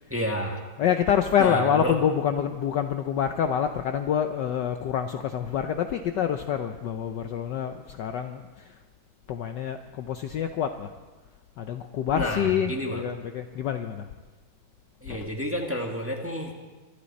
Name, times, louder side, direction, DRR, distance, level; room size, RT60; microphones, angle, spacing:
voice 1, 0.1-0.6 1.4-2.0 12.1-13.0 15.0-16.5, equal, 5° right, 1 dB, 1.2 m, -30 dB
voice 2, 0.8-8.7 9.3-10.9 11.6-14.1 15.1-15.3, left 8 dB, 70° left, 7 dB, 1.1 m, -27 dB
25.0 x 12.0 x 4.2 m, 1.3 s
omnidirectional pair, 2.4 m